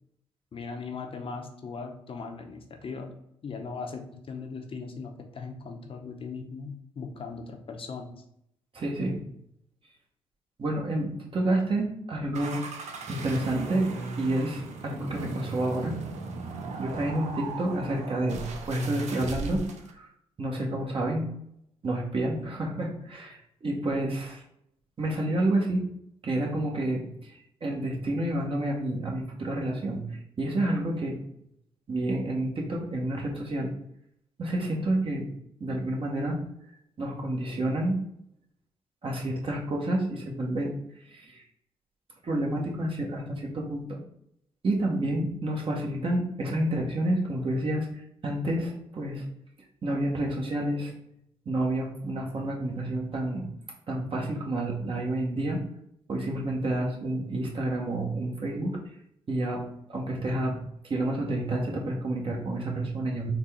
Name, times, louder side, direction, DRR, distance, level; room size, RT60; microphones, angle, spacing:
voice 1, 0.5-3.1 3.4-8.1, left 4 dB, 45° left, 4 dB, 0.7 m, -39 dB
voice 2, 8.7-9.2 10.6-12.6 13.1-13.9 14.2-15.9 16.8-20.1 20.4-21.3 21.8-24.4 25.0-25.8 26.2-27.3 27.6-31.1 31.9-33.7 34.4-35.3 35.6-36.4 37.0-38.0 39.0-40.7 41.1-41.4 42.2-44.0 44.6-49.2 49.8-50.9 51.4-53.5 53.9-55.6 56.1-58.8 59.3-59.6 59.9-63.3, right 1 dB, 45° right, -1 dB, 1.1 m, -29 dB
sound 1, 12.3-19.9, right 4 dB, 65° right, 0.6 m, -38 dB
4.0 x 2.2 x 3.5 m, 0.75 s
supercardioid pair, 60°, 13 cm